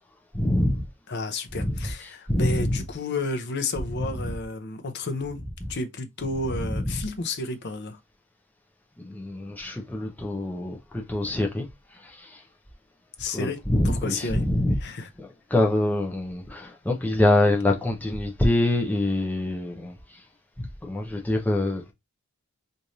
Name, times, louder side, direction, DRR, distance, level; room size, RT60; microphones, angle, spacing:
voice 1, 0.3-0.9 1.5-2.9 3.9-4.4 5.6-5.7 6.2-7.1 9.0-11.7 11.9-12.4 13.3-14.8 15.2-20.2 20.6-21.9, left 1 dB, 5° left, 0.8 m, -26 dB
voice 2, 1.1-8.0 13.2-13.6 13.8-14.4 14.8-15.1, left 3 dB, 50° left, 0.6 m, -31 dB
3.2 x 2.6 x 4.0 m
head